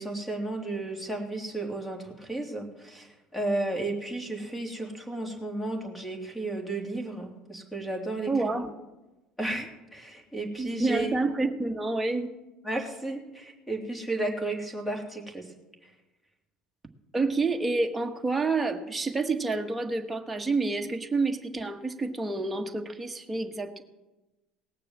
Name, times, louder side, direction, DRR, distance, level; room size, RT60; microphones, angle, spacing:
voice 1, 0.0-8.3 9.4-11.1 12.6-15.5 15.8-15.9, right 2 dB, 10° left, 3 dB, 3.2 m, -33 dB
voice 2, 8.3-8.7 10.6-12.3 17.1-23.8, right 3 dB, 15° right, 3 dB, 1.6 m, -28 dB
18.5 x 6.8 x 7.5 m, 1.1 s
supercardioid pair, 85°, 0 cm